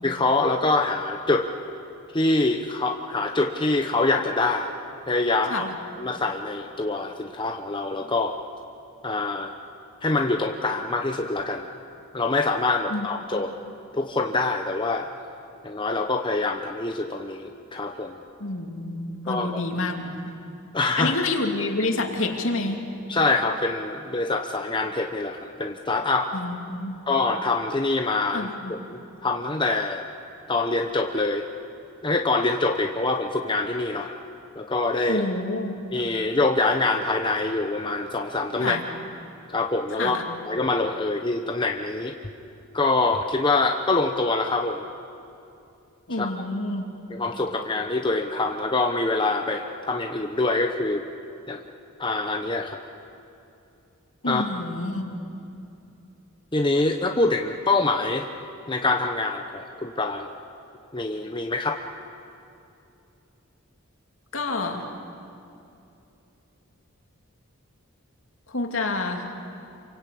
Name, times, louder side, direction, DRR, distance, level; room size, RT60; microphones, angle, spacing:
voice 1, 0.0-1.5 2.1-4.7 5.1-5.7 6.0-8.3 9.0-9.5 10.0-11.7 12.1-13.5 13.9-15.1 15.6-18.2 19.3-19.6 20.7-21.1 23.1-26.3 27.1-30.1 30.5-31.5 32.0-34.2 34.6-35.2 35.9-38.8 39.5-40.2 40.4-42.2 42.7-44.8 46.2-46.3 47.1-51.1 51.5-51.6 52.0-52.8 54.3-54.4 56.5-58.3 58.7-60.3 60.9-61.8, left 3 dB, 20° left, 3 dB, 0.9 m, -25 dB
voice 2, 18.4-20.4 21.0-22.9 26.3-27.0 28.3-28.7 35.1-35.8 38.6-38.8 40.0-40.3 46.1-46.9 54.2-55.1 64.3-64.9 68.5-69.3, left 2 dB, 65° left, 3 dB, 2.7 m, -28 dB
27.5 x 24.0 x 8.5 m, 2.7 s
head